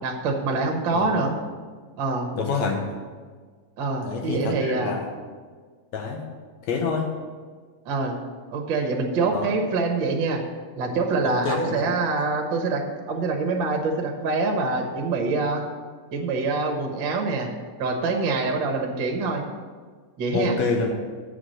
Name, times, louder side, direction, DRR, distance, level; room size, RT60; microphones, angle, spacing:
voice 1, 0.0-1.3 2.0-2.3 3.8-5.0 7.8-8.2 8.5-10.4 10.8-12.8 13.1-15.6 16.1-17.5 17.8-19.4 20.2-20.6, right 3 dB, 50° right, 1 dB, 1.6 m, -25 dB
voice 2, 2.3-2.9 4.0-5.1 5.9-6.3 6.7-7.1 9.3-9.5 11.2-11.9 20.3-20.9, left 4 dB, 70° left, 2 dB, 2.1 m, -27 dB
8.1 x 5.9 x 7.8 m, 1.5 s
omnidirectional pair, 3.4 m